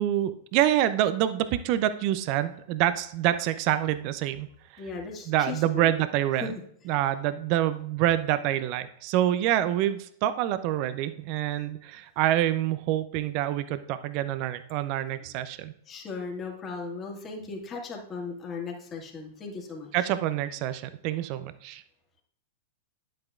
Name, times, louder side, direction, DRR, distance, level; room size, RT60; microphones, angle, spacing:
voice 1, 0.0-4.5 5.3-6.5 6.9-15.7 19.9-21.8, right 12 dB, 45° right, 12 dB, 0.5 m, -26 dB
voice 2, 4.8-5.9 6.4-6.5 15.9-20.1, left 4 dB, 25° left, 0 dB, 2.0 m, -37 dB
10.5 x 7.6 x 2.5 m, 0.69 s
figure-of-eight pair, 100°, 0 cm